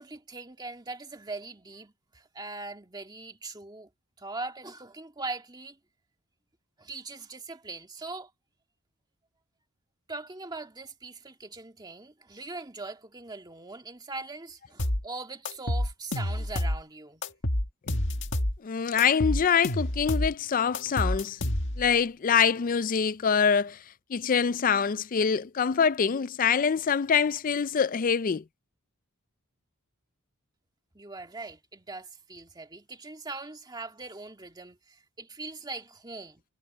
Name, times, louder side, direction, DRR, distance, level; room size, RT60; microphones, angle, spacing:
voice 1, 0.0-3.9 4.2-5.8 6.8-8.3 10.1-17.2 30.9-36.4, right 3 dB, 20° right, 2.0 m, -41 dB
sound 1, 14.8-15.0 15.5-16.8 17.2-18.6 19.0-20.3 20.7-21.9, left 1 dB, 55° left, 1.9 m, -28 dB
voice 2, 18.6-21.4 21.8-23.8 24.1-28.4, left 6 dB, 40° left, 0.4 m, -25 dB
head